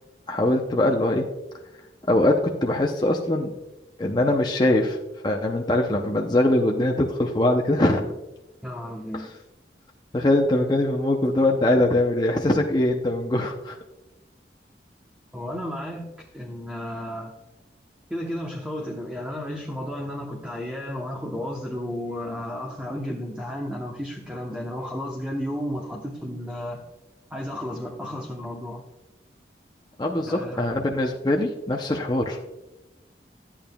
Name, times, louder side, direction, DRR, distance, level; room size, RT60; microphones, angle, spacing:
voice 1, 0.3-1.3 2.1-3.5 4.0-5.0 5.2-8.1 9.1-9.2 10.1-13.8 30.0-32.4, left 1 dB, 25° left, 1 dB, 0.6 m, -22 dB
voice 2, 8.6-9.3 15.3-17.3 18.1-26.8 27.3-28.8 30.3-30.7, equal, 5° right, -1 dB, 0.8 m, -33 dB
12.5 x 8.6 x 2.2 m, 1.0 s
head